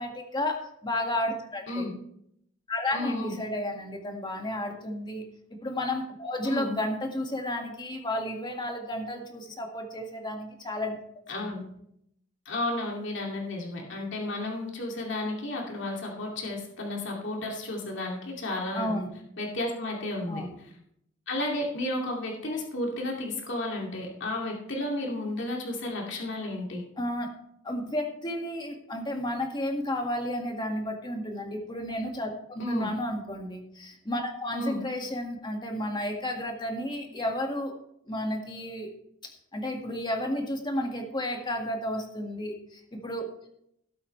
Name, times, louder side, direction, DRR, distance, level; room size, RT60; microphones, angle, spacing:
voice 1, 0.0-1.9 2.7-5.2 5.6-11.0 11.3-11.7 18.7-19.1 20.3-20.5 27.0-27.3 27.6-37.7 38.1-38.9 39.2-43.5, left 1 dB, 25° left, 2 dB, 1.9 m, -32 dB
voice 2, 2.9-3.3 6.4-6.7 11.3-11.6 12.5-19.0 19.4-20.4 21.3-26.8 32.6-32.9 34.5-34.8, left 2 dB, 65° left, -1 dB, 2.5 m, -32 dB
17.5 x 8.4 x 3.3 m, 0.73 s
head